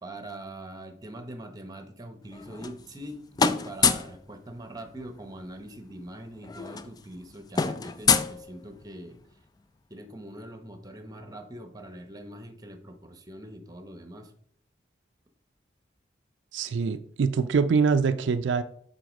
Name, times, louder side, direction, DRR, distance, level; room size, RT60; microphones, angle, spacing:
voice 1, 0.0-9.2 9.9-14.3, right 1 dB, 20° right, 8 dB, 0.9 m, -43 dB
sound 1, 2.3-3.1 3.4-4.2 5.6-5.7 5.9-6.1 6.4-9.0, left 5 dB, 20° left, 0.4 m, -26 dB
voice 2, 16.5-18.6, right 5 dB, 80° right, 11 dB, 0.4 m, -24 dB
7.6 x 4.3 x 5.1 m, 0.63 s
head